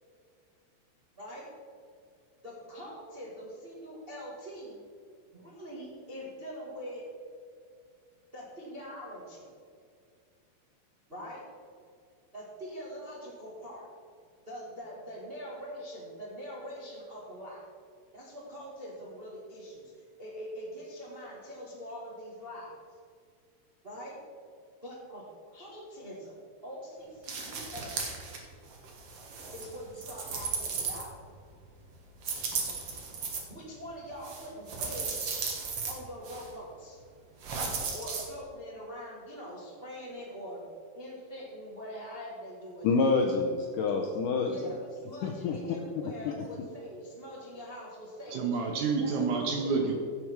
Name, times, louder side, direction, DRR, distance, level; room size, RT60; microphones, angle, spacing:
voice 1, 1.1-1.5 2.4-4.8 5.3-7.0 8.3-9.5 11.1-11.4 12.3-13.9 14.4-17.6 18.1-22.7 23.8-24.2 24.8-25.2 25.5-26.4 26.6-28.1 29.5-31.2 33.5-35.3 35.9-37.0 37.9-40.7 40.9-42.9 44.0-48.4 49.0-49.7, equal, 25° right, -5 dB, 1.3 m, -43 dB
sound 1, 27.2-28.4 28.7-31.4 32.2-33.4 34.2-35.9 36.2-36.5 37.4-38.2, right 5 dB, 55° right, 1.7 m, -35 dB
voice 2, 42.8-44.5 45.2-45.6, left 4 dB, 85° left, 1 dB, 1.9 m, -27 dB
voice 3, 48.3-50.0, right 4 dB, 80° right, 3 dB, 1.7 m, -28 dB
15.5 x 7.1 x 4.7 m, 2.2 s
omnidirectional pair, 4.8 m